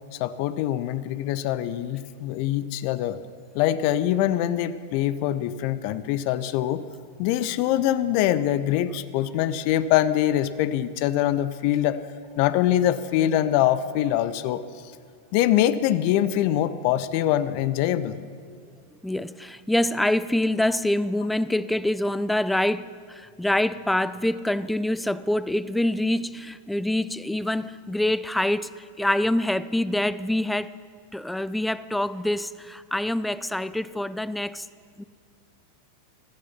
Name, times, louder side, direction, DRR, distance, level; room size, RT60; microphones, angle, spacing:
voice 1, 0.2-3.2 3.5-6.8 7.2-12.0 12.4-14.6 15.3-18.1, left 12 dB, 45° left, 0.6 m, -23 dB
voice 2, 19.0-30.7 31.1-34.7 35.0-35.1, left 1 dB, 5° left, 0.4 m, -25 dB
17.5 x 13.5 x 5.8 m
figure-of-eight pair, 90°, 0 cm